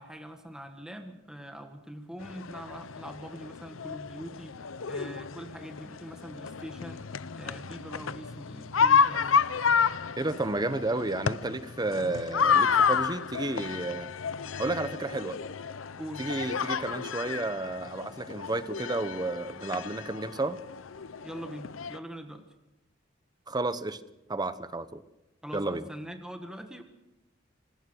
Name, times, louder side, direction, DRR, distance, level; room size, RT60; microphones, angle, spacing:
voice 1, 0.0-4.6 4.9-7.0 7.4-9.4 16.0-16.2 21.2-22.4 25.4-26.8, equal, 5° right, 5 dB, 1.6 m, -43 dB
sound 1, 2.2-22.0, left 6 dB, 90° left, 0.7 m, -30 dB
voice 2, 10.2-14.1 14.6-15.4 16.2-20.6 23.5-24.0 24.3-25.0 25.5-25.9, right 2 dB, 20° right, 13 dB, 1.0 m, -32 dB
26.0 x 19.5 x 6.4 m, 0.96 s
head